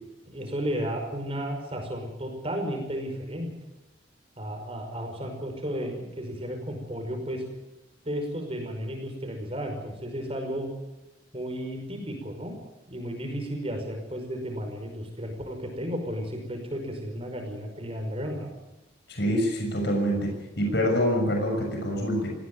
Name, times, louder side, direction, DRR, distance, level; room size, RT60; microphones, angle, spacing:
voice 1, 0.3-3.5 4.4-7.4 8.1-10.7 11.3-12.5 12.9-18.5, equal, 30° right, 4 dB, 5.5 m, -33 dB
voice 2, 19.1-22.3, equal, 60° left, 2 dB, 6.4 m, -26 dB
19.0 x 17.0 x 9.3 m, 0.99 s
head